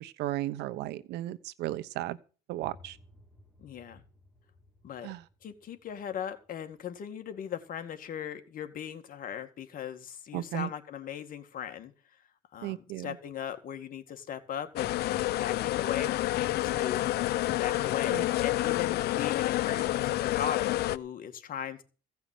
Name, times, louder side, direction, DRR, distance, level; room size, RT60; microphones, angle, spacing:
voice 1, 0.0-2.2 2.5-3.0 5.0-5.2 10.3-10.7 12.6-13.1 18.1-18.3, right 14 dB, 85° right, 1.1 m, -35 dB
sound 1, 2.6-8.2, left 2 dB, ahead, 2.8 m, -59 dB
voice 2, 3.6-4.0 4.8-5.1 5.4-12.2 12.5-17.0 17.4-21.8, left 9 dB, 55° left, 2.2 m, -38 dB
sound 2, 14.8-21.0, left 16 dB, 75° left, 0.7 m, -29 dB
sound 3, 15.7-16.0 16.6-17.0 17.4-17.9 18.2-18.8 19.4-19.9, right 2 dB, 20° right, 5.0 m, -58 dB
16.0 x 5.9 x 9.2 m
cardioid pair, 110°, 17 cm